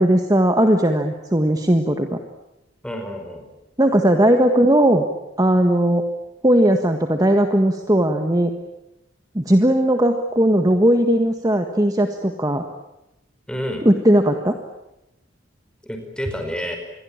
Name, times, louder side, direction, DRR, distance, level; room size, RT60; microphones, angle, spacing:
voice 1, 0.0-2.2 3.8-5.1 5.4-6.0 6.4-8.5 9.3-12.6 13.8-14.6, right 1 dB, 20° right, 5 dB, 1.5 m, -17 dB
voice 2, 2.8-3.4 13.5-13.9 15.8-16.8, equal, 5° left, 4 dB, 5.1 m, -29 dB
28.0 x 22.0 x 8.9 m, 0.91 s
head